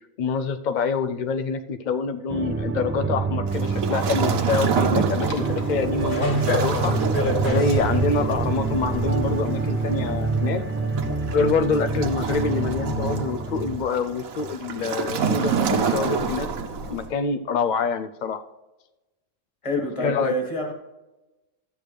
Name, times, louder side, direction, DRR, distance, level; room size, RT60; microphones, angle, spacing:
voice 1, 0.0-6.9 7.4-10.6 11.3-16.5 16.9-18.4 20.0-20.3, left 5 dB, 80° left, 8 dB, 0.4 m, -26 dB
sound 1, 2.3-13.8, right 4 dB, 10° right, 0.6 m, -27 dB
Waves surf, 3.5-17.1, right 5 dB, 90° right, 1.3 m, -28 dB
sound 2, 5.2-10.4, left 1 dB, 40° left, 1.3 m, -30 dB
voice 2, 19.6-20.7, left 1 dB, 25° left, 3 dB, 1.5 m, -27 dB
12.0 x 8.4 x 3.3 m, 1.0 s
omnidirectional pair, 1.4 m